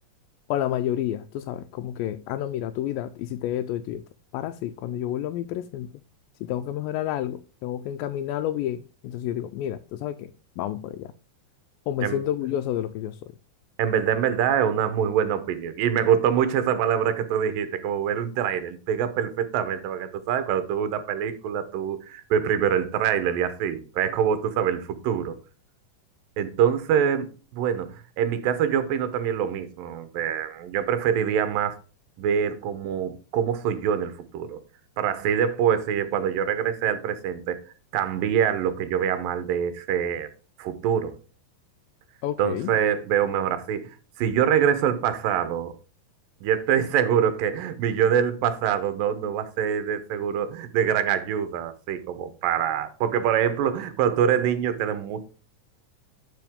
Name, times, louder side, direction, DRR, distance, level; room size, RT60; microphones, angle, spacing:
voice 1, 0.5-4.0 4.3-5.9 6.4-11.1 11.9-13.3 42.2-42.7, left 11 dB, 90° left, 2.3 m, -30 dB
voice 2, 13.8-25.4 26.4-31.8 32.2-34.6 35.0-37.6 37.9-40.3 40.6-41.2 42.4-43.9 44.2-45.8 46.4-55.2, right 8 dB, 80° right, 2.7 m, -25 dB
11.0 x 5.4 x 3.6 m
omnidirectional pair, 4.0 m